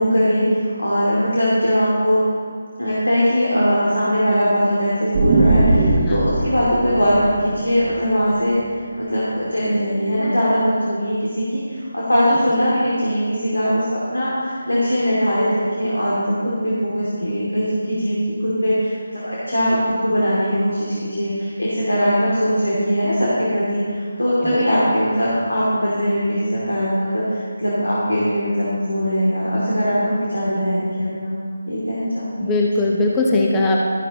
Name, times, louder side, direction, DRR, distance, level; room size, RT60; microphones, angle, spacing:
voice 1, 0.0-2.2 2.8-8.6 9.0-31.3 31.7-32.5 32.7-32.8, equal, 85° left, -8 dB, 2.5 m, -20 dB
sound 1, 5.1-8.8, right 2 dB, 25° right, 1.1 m, -20 dB
voice 2, 32.4-33.8, left 2 dB, 10° left, -2 dB, 0.9 m, -19 dB
12.5 x 11.0 x 3.0 m, 2.2 s
figure-of-eight pair, 160°, 0 cm